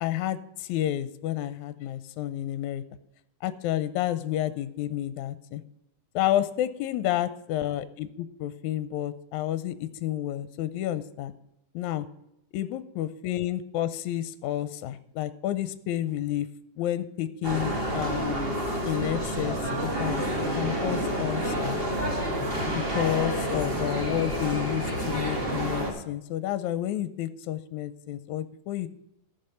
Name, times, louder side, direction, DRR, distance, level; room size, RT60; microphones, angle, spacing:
voice 1, 0.0-2.8 3.4-5.6 6.2-11.3 11.7-12.1 12.5-16.5 16.8-18.4 18.9-19.6 19.8-20.2 20.6-21.8 22.6-28.9, left 12 dB, 80° left, 13 dB, 1.9 m, -30 dB
sound 1, 17.4-25.9, equal, 20° right, 1.9 m, -29 dB
14.5 x 5.4 x 5.6 m, 0.81 s
omnidirectional pair, 3.5 m